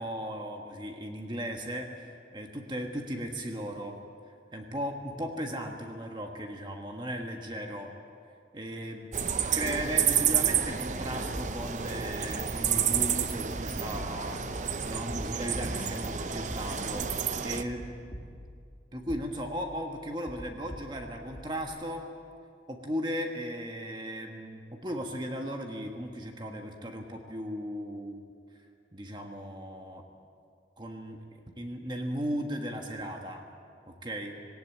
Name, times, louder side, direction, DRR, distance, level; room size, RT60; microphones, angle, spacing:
voice 1, 0.0-4.0 4.5-7.9 8.5-9.1 9.5-14.4 14.9-17.1 17.4-17.9 18.9-22.1 22.7-28.3 28.9-30.0 30.8-33.5 33.9-34.4, equal, 25° right, 3 dB, 1.4 m, -36 dB
sound 1, 9.1-17.6, right 7 dB, 40° right, 0.7 m, -30 dB
sound 2, 13.9-14.6 15.1-17.1 17.7-18.7 19.1-19.7 20.3-21.7, equal, 20° left, 2.6 m, -46 dB
18.0 x 17.5 x 8.8 m, 2.3 s
head